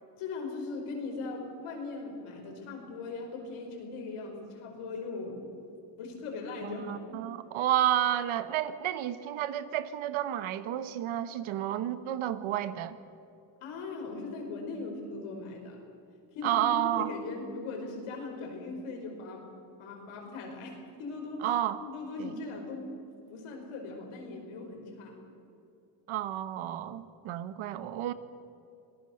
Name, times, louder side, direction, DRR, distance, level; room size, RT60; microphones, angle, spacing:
voice 1, 0.2-5.5 6.0-7.2 13.6-15.8 16.3-19.5 19.8-21.5 21.8-22.9 23.3-25.2, left 3 dB, 85° left, 2 dB, 5.4 m, -39 dB
voice 2, 6.6-13.0 16.4-17.1 21.4-21.8 22.2-22.3 26.1-28.1, right 12 dB, 75° right, 12 dB, 1.3 m, -31 dB
26.0 x 18.5 x 6.6 m, 2.7 s
cardioid pair, 120°, 49 cm